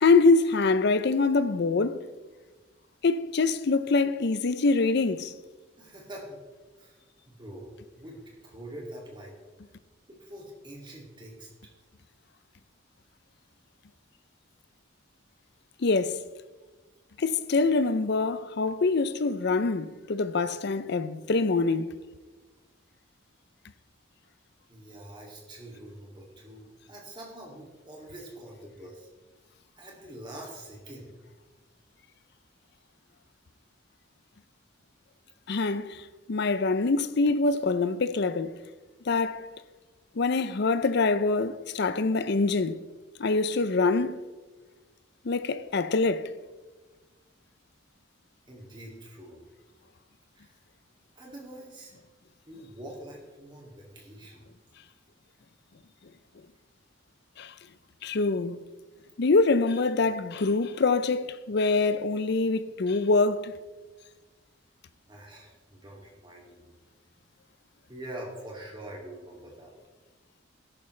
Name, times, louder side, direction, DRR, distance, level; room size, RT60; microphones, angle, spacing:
voice 1, 0.0-2.1 3.0-5.3 15.8-16.2 17.2-22.0 35.5-38.6 39.1-39.5 40.2-42.8 43.2-44.2 45.2-46.3 57.4-57.5 58.0-58.6 59.2-63.6, left 3 dB, 55° left, 0.5 m, -25 dB
voice 2, 5.8-6.4 6.8-7.0 7.3-8.2 8.4-9.3 10.1-11.5 24.7-29.1 29.8-31.1 48.5-49.5 50.3-50.6 51.2-51.9 52.5-54.5 65.1-66.7 67.9-69.7, right 1 dB, 25° right, 2.5 m, -44 dB
13.0 x 11.5 x 3.3 m
head